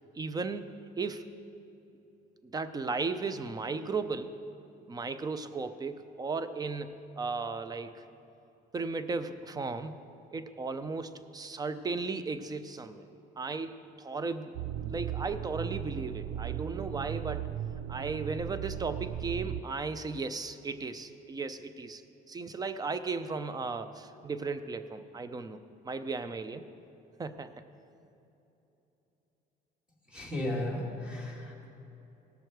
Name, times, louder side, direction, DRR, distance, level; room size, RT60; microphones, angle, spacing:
voice 1, 0.1-0.7 1.0-1.3 2.4-4.4 4.9-8.0 8.7-9.9 10.3-13.1 13.4-14.5 14.8-17.6 17.9-22.0 22.3-26.7 27.2-27.6, right 4 dB, 20° right, 11 dB, 0.6 m, -36 dB
sound 1, 14.5-19.6, right 10 dB, 85° right, 0.4 m, -37 dB
voice 2, 30.1-31.6, left 1 dB, 5° right, -2 dB, 2.4 m, -35 dB
18.0 x 6.5 x 4.6 m, 3.0 s
cardioid pair, 110°, 17 cm